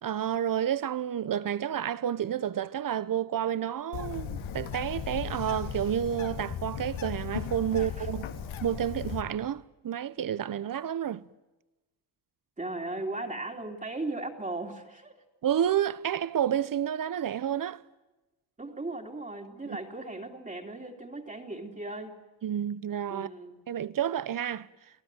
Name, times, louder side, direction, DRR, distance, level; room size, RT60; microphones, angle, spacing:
voice 1, 0.0-8.3 8.6-11.2 15.4-17.8 19.7-19.8 22.4-23.3 23.7-24.7, right 10 dB, 45° right, 1.1 m, -30 dB
Bird, 3.9-9.2, left 8 dB, 90° left, 3.1 m, -36 dB
voice 2, 7.7-8.2 12.6-15.1 18.6-22.2 23.1-23.6, right 2 dB, 15° right, 3.1 m, -37 dB
28.5 x 18.5 x 9.1 m
cardioid pair, 120°, 45 cm